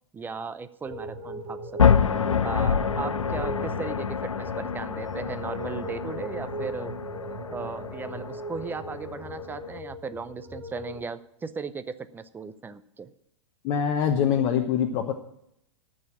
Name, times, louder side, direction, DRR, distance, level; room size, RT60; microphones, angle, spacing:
voice 1, 0.1-1.6 1.9-2.0 2.4-6.9 7.5-13.1, right 5 dB, 10° right, 11 dB, 0.6 m, -37 dB
sound 1, 0.9-11.0, right 1 dB, 40° right, 4.6 m, -39 dB
sound 2, 1.8-9.8, left 7 dB, 80° left, 0.5 m, -27 dB
Bass guitar, 2.0-8.2, left 10 dB, 15° left, 1.1 m, -41 dB
voice 2, 13.6-15.1, left 8 dB, 35° left, 5 dB, 1.1 m, -24 dB
14.0 x 6.4 x 8.5 m, 0.75 s
figure-of-eight pair, 100°, 16 cm